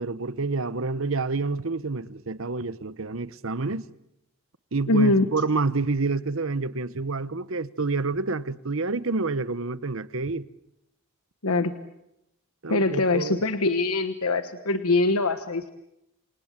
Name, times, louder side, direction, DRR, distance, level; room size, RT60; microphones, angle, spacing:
voice 1, 0.0-3.8 4.7-10.5 12.6-13.4, right 3 dB, 65° right, 1.0 m, -28 dB
voice 2, 4.9-5.3 11.4-11.7 12.7-15.7, left 2 dB, 90° left, 1.3 m, -23 dB
28.0 x 27.5 x 7.5 m
head